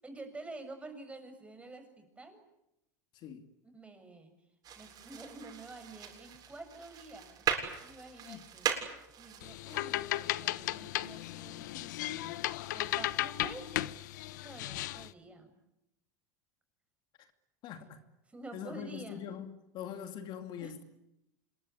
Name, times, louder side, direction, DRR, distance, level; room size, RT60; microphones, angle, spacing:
voice 1, 0.0-2.4 3.7-4.3 4.8-7.6 7.8-13.8 14.4-15.6 18.3-19.2 20.6-20.7, right 2 dB, 10° right, 7.1 m, -49 dB
voice 2, 3.1-3.5 8.2-8.4 17.2-17.3 17.6-18.0 18.5-19.5 19.7-20.8, left 9 dB, 50° left, 2.5 m, -43 dB
sound 1, 4.6-9.8, right 9 dB, 40° right, 7.3 m, -38 dB
sound 2, 9.4-15.1, left 16 dB, 80° left, 1.0 m, -35 dB
26.5 x 22.5 x 9.8 m
supercardioid pair, 115°, 10 cm